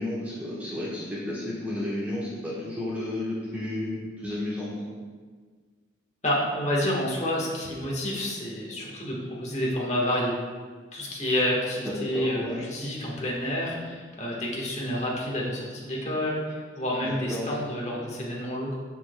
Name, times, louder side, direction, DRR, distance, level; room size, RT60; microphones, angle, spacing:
voice 1, 0.0-4.7 11.8-12.6 17.0-17.6, left 1 dB, 10° right, -9 dB, 1.2 m, -32 dB
voice 2, 6.2-10.3 10.9-18.8, left 1 dB, 35° left, -4 dB, 1.4 m, -29 dB
7.2 x 7.1 x 2.2 m, 1.5 s
head